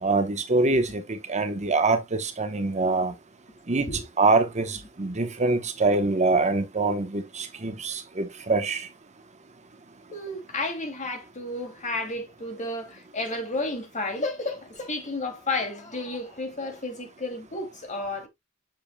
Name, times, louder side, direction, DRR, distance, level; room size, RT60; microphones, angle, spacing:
voice 1, 0.0-3.1 3.7-3.9 4.2-8.9, right 3 dB, 35° right, 0.9 m, -24 dB
voice 2, 10.1-18.3, left 2 dB, 35° left, 2.5 m, -32 dB
7.8 x 6.9 x 2.2 m
head